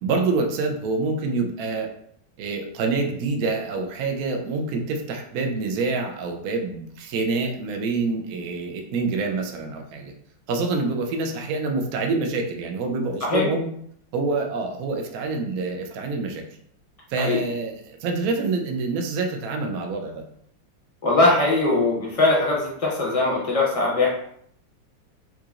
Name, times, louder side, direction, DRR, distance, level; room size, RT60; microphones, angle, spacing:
voice 1, 0.0-1.9 2.4-10.1 10.5-13.7 14.1-16.4 17.1-20.2, right 3 dB, 75° right, 2 dB, 0.8 m, -26 dB
voice 2, 21.0-24.1, left 2 dB, 60° left, -3 dB, 0.3 m, -21 dB
3.7 x 2.9 x 2.4 m, 0.67 s
omnidirectional pair, 2.0 m